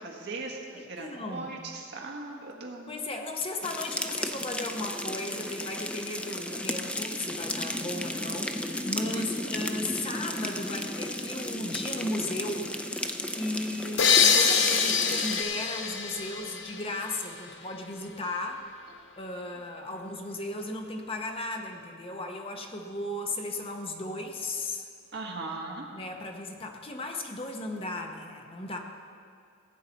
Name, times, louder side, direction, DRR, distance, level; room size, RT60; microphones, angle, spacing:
voice 1, 0.0-2.9 9.1-9.3 9.7-9.9 19.0-19.1 25.1-25.8, right 2 dB, 60° right, 0 dB, 1.5 m, -39 dB
voice 2, 0.8-1.5 2.9-18.7 19.2-24.9 25.9-28.8, left 2 dB, 30° left, 3 dB, 0.9 m, -36 dB
sound 1, 3.6-15.4, left 1 dB, 5° left, 0.4 m, -34 dB
sound 2, 14.0-17.5, left 6 dB, 65° left, 0.8 m, -25 dB
16.5 x 8.5 x 4.1 m, 2.2 s
head